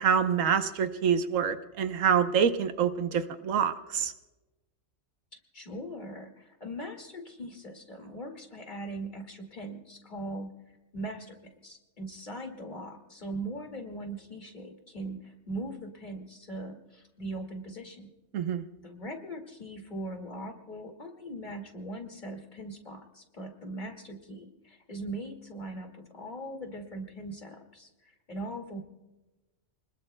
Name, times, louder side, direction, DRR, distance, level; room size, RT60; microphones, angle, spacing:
voice 1, 0.0-4.1 18.3-18.6, right 7 dB, 85° right, 9 dB, 1.2 m, -26 dB
voice 2, 5.5-10.5 10.9-18.1 18.8-28.8, right 1 dB, 35° left, 3 dB, 2.3 m, -40 dB
29.5 x 20.5 x 2.2 m, 1.1 s
omnidirectional pair, 1.3 m